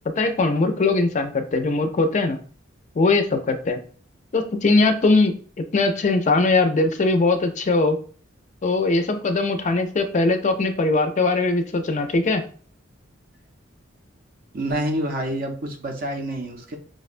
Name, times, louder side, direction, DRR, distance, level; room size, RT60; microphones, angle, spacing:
voice 1, 0.2-2.4 3.0-3.8 4.3-8.0 8.6-12.4, left 3 dB, 40° left, 7 dB, 0.4 m, -20 dB
voice 2, 14.5-16.8, right 1 dB, 45° right, 3 dB, 0.5 m, -27 dB
4.9 x 2.1 x 2.5 m, 0.43 s
head